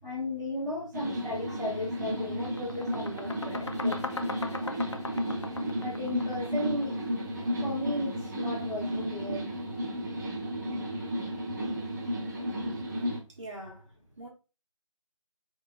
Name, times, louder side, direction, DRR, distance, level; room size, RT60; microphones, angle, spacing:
voice 1, 0.0-4.0 4.3-4.8 5.7-6.9 7.6-9.4, left 2 dB, ahead, 0.9 m, -35 dB
sound 1, 0.9-13.2, equal, 35° right, 1.1 m, -33 dB
sound 2, 1.5-1.7 2.0-7.0, left 3 dB, 55° left, 0.4 m, -39 dB
voice 2, 13.4-13.9 14.2-14.3, right 1 dB, 60° right, 1.7 m, -42 dB
4.0 x 3.0 x 2.3 m
figure-of-eight pair, 160°, 18 cm